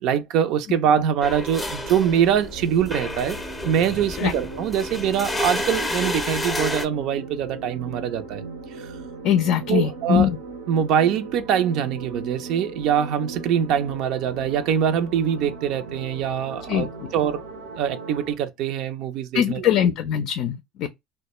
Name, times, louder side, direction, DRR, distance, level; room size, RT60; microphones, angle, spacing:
voice 1, 0.0-3.4 3.6-8.4 8.8-8.9 9.7-10.3 10.7-16.9 17.1-17.4 17.8-19.7, right 9 dB, 65° right, 0.5 m, -23 dB
sound 1, 1.2-6.9, left 1 dB, 10° left, 0.6 m, -30 dB
sound 2, 1.8-18.4, right 4 dB, 90° right, 1.1 m, -38 dB
voice 2, 9.2-10.4 16.7-17.1 19.3-20.9, left 9 dB, 65° left, 0.4 m, -22 dB
2.2 x 2.1 x 2.9 m
supercardioid pair, 90°, 0 cm